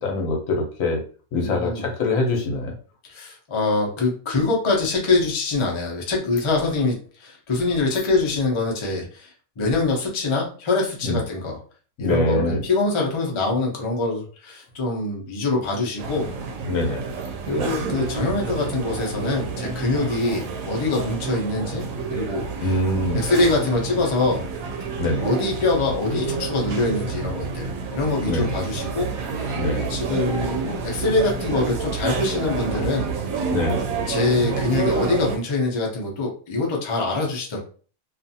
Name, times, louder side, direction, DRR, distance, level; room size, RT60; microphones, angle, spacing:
voice 1, 0.0-1.0 1.3-2.7 11.0-11.2 12.0-12.6 16.7-17.0 22.6-23.2 25.0-25.2 28.3-28.6 29.5-29.8 33.5-33.9, left 2 dB, 75° left, 1 dB, 1.1 m, -23 dB
voice 2, 1.4-1.8 3.1-11.6 12.0-16.3 17.5-22.8 23.1-24.5 25.2-29.6 29.9-33.5 34.1-37.6, left 3 dB, 35° left, -1 dB, 0.5 m, -24 dB
sound 1, 16.0-35.4, right 5 dB, 80° right, 1.0 m, -29 dB
2.5 x 2.4 x 2.7 m, 0.40 s
omnidirectional pair, 1.5 m